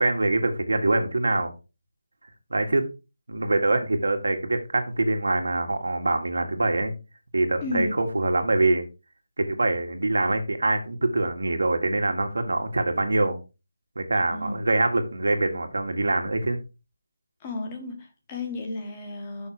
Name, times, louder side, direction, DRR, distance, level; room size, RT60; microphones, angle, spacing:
voice 1, 0.0-1.5 2.5-2.9 3.3-6.9 7.3-8.9 9.4-13.4 14.0-16.6, right 2 dB, 80° right, 1.9 m, -24 dB
voice 2, 7.6-7.9 14.3-14.6 17.4-19.5, left 2 dB, 15° left, 1.1 m, -33 dB
6.4 x 5.8 x 4.9 m
figure-of-eight pair, 180°, 0 cm